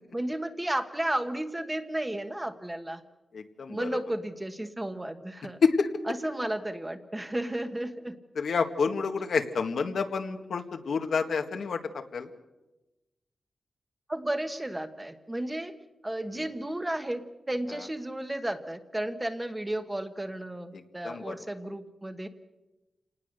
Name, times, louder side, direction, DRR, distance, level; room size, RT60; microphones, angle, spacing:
voice 1, 0.1-3.0 3.7-5.6 6.1-8.2 14.1-15.7 16.0-22.3, right 1 dB, 10° right, 7 dB, 1.3 m, -33 dB
voice 2, 3.3-3.9 5.6-5.9 8.4-11.8 12.1-12.3 21.0-21.3, left 5 dB, 75° left, 5 dB, 1.8 m, -28 dB
28.5 x 19.0 x 6.7 m, 1.0 s
wide cardioid pair, 170°, 0 cm